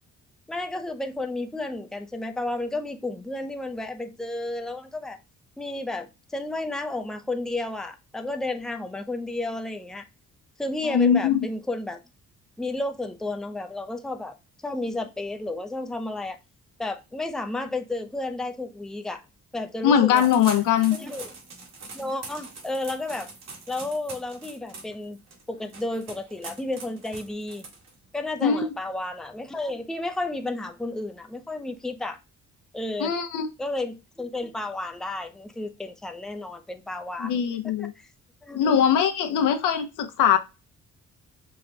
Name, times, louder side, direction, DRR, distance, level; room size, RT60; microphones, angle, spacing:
voice 1, 0.5-5.2 5.6-10.1 10.6-12.0 12.6-14.3 14.6-16.4 16.8-19.2 19.5-20.3 20.9-21.3 21.9-23.3 23.7-25.2 25.5-27.6 28.1-32.2 32.7-33.1 33.6-37.3 37.6-37.9 38.4-38.8, left 2 dB, ahead, 0.5 m, -32 dB
voice 2, 10.8-11.4 19.8-21.0 28.4-28.7 33.0-33.5 37.2-37.9 38.5-40.4, left 8 dB, 85° left, 0.9 m, -21 dB
sound 1, 20.1-28.2, right 3 dB, 60° right, 1.9 m, -43 dB
5.3 x 2.3 x 3.7 m
cardioid pair, 90°, 30 cm